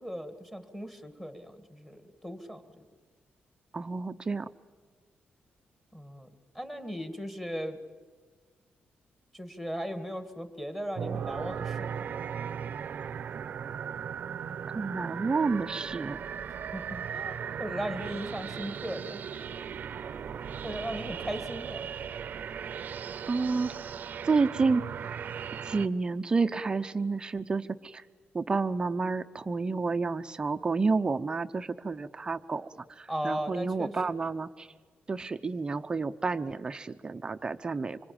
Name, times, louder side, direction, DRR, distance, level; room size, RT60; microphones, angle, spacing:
voice 1, 0.0-2.9 5.9-6.3 6.5-7.8 9.3-12.1 16.7-19.2 20.6-21.9 33.1-34.2, equal, 5° left, 8 dB, 2.1 m, -37 dB
voice 2, 3.7-4.5 14.7-16.2 23.2-23.9 24.2-24.8 25.7-28.0 28.3-34.7 35.1-38.0, right 4 dB, 25° right, 9 dB, 0.7 m, -30 dB
sound 1, 11.0-25.9, right 7 dB, 50° right, 0.8 m, -37 dB
26.0 x 24.5 x 8.8 m, 1.5 s
wide cardioid pair, 150°, 4 cm